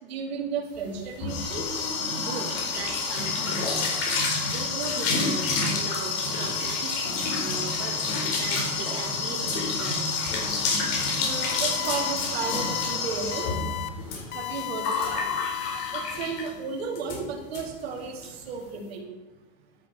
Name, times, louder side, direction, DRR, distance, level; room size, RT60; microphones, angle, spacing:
voice 1, 0.0-1.7 11.2-13.5 14.3-15.3 15.7-19.1, right 5 dB, 90° right, 1 dB, 2.8 m, -33 dB
sound 1, 0.8-16.6 17.0-17.2 17.5-17.6 17.9-18.3, left 4 dB, 60° left, 4.6 m, -28 dB
voice 2, 2.2-4.0 4.5-10.6 15.2-15.5, right 5 dB, 50° right, 2 dB, 2.3 m, -39 dB
sound 2, 11.5-12.1 12.4-13.0 13.3-13.9 14.3-16.6, left 16 dB, 35° left, 0.9 m, -35 dB
12.0 x 7.7 x 7.0 m, 1.1 s
supercardioid pair, 115°, 30 cm